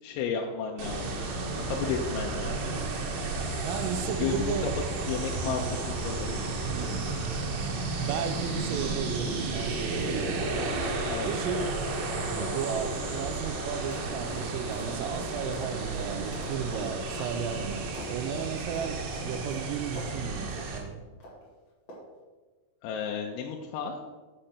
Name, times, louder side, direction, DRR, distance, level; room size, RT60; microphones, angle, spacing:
voice 1, 0.0-1.1 1.6-2.6 4.2-4.5 5.1-6.6 11.1-11.3 22.8-24.0, left 7 dB, 85° left, 1 dB, 3.3 m, -33 dB
sound 1, 0.8-20.8, right 3 dB, 70° right, 2.2 m, -33 dB
voice 2, 3.6-4.7 5.5-5.8 6.7-7.2 8.0-10.8 11.2-11.8 12.3-21.0, right 7 dB, 90° right, 7 dB, 3.3 m, -34 dB
sound 2, 5.2-20.1 20.5-20.7 21.2-21.5 21.9-22.2, equal, 50° left, 1.9 m, -46 dB
6.6 x 6.3 x 5.9 m, 1.3 s
omnidirectional pair, 5.8 m